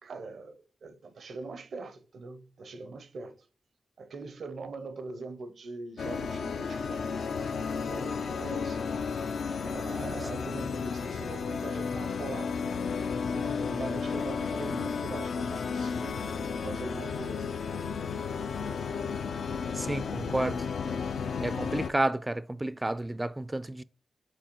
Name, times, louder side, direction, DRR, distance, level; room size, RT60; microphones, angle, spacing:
voice 1, 0.0-3.5 4.0-7.2 7.9-9.0 9.6-12.6 13.3-16.2 16.6-17.5 20.2-20.6, right 3 dB, 70° right, 0.6 m, -42 dB
sound 1, 6.0-21.9, left 5 dB, 75° left, 0.4 m, -33 dB
voice 2, 19.8-20.5 21.4-23.8, right 1 dB, 20° right, 0.3 m, -30 dB
7.6 x 4.1 x 3.0 m
supercardioid pair, 40°, 0 cm